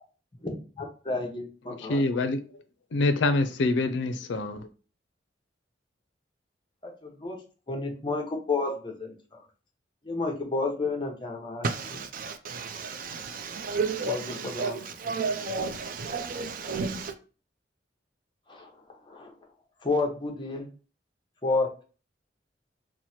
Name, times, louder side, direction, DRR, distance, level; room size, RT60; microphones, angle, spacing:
voice 1, 0.4-2.0 7.0-7.4 7.7-9.1 10.0-11.7 14.1-14.2 14.5-14.8 18.5-18.7 19.1-19.3 19.8-20.7 21.4-21.7, left 3 dB, 25° left, 0.7 m, -30 dB
voice 2, 1.7-2.4 2.9-4.7, left 2 dB, 85° left, 0.4 m, -26 dB
voice 3, 11.6-17.1, right 4 dB, 50° right, 0.4 m, -32 dB
3.0 x 2.1 x 4.1 m
head